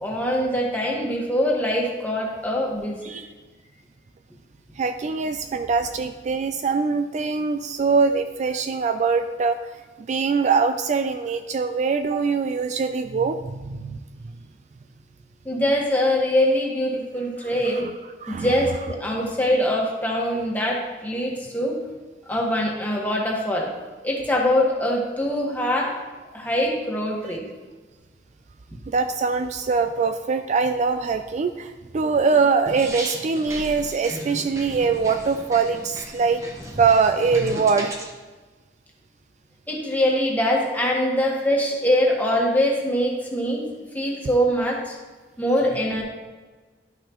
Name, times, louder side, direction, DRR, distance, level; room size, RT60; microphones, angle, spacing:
voice 1, 0.0-3.0 15.4-17.9 18.3-21.7 22.3-23.7 24.0-26.0 26.3-27.4 39.7-43.7 43.9-45.0 45.4-46.0, equal, 10° left, -2 dB, 1.5 m, -23 dB
voice 2, 4.8-9.7 10.0-14.0 18.2-18.5 28.9-36.4 36.8-38.0, right 5 dB, 40° right, 8 dB, 0.3 m, -23 dB
sound 1, 32.7-38.1, equal, 20° right, 1.1 m, -35 dB
12.0 x 5.8 x 3.0 m, 1.3 s
head